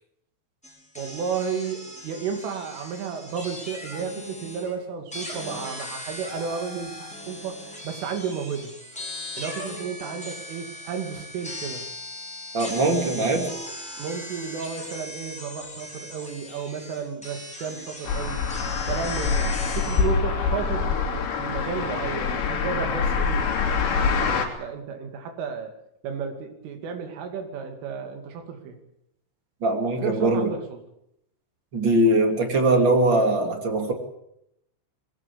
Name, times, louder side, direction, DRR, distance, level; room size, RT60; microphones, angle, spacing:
sound 1, 0.6-4.7 5.1-20.0, left 1 dB, ahead, 5.7 m, -38 dB
voice 1, 1.0-8.7 9.4-11.8 14.0-18.4 18.9-23.4 23.7-25.7 26.0-28.8 30.0-30.8, right 6 dB, 85° right, 6 dB, 5.0 m, -33 dB
voice 2, 12.5-13.5 29.6-30.5 31.7-33.9, right 2 dB, 30° right, 5 dB, 2.5 m, -21 dB
sound 2, 18.1-24.5, left 5 dB, 65° left, 4.9 m, -25 dB
21.0 x 17.5 x 8.5 m, 0.78 s
omnidirectional pair, 5.5 m